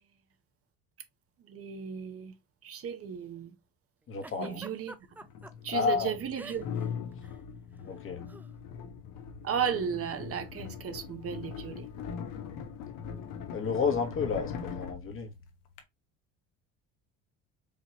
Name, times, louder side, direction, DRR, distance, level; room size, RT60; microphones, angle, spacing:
voice 1, 1.5-2.3 2.6-3.5 4.4-4.9 5.6-6.7 9.4-11.9, right 8 dB, 45° right, 0.8 m, -34 dB
voice 2, 4.1-4.6 5.7-6.2 7.8-8.2 13.5-15.3, left 5 dB, 40° left, 1.2 m, -31 dB
sound 1, 4.2-4.3 5.2-15.8, left 7 dB, 75° left, 1.1 m, -41 dB
Giggle, 4.2-5.5 6.3-6.9 7.1-7.4 8.3-8.5, right 2 dB, 5° right, 0.3 m, -46 dB
5.0 x 2.9 x 2.9 m
cardioid pair, 115°, 33 cm